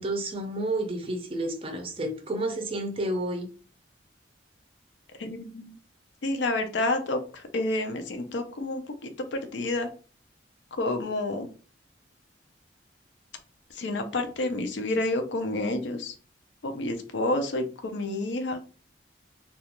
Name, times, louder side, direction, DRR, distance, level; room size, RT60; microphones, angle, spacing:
voice 1, 0.0-3.5, right 1 dB, 30° right, 0.5 m, -30 dB
voice 2, 5.2-5.8 6.2-9.9 10.7-11.5 13.7-16.1 16.6-18.6, left 2 dB, 75° left, 0.5 m, -29 dB
2.3 x 2.3 x 2.9 m
head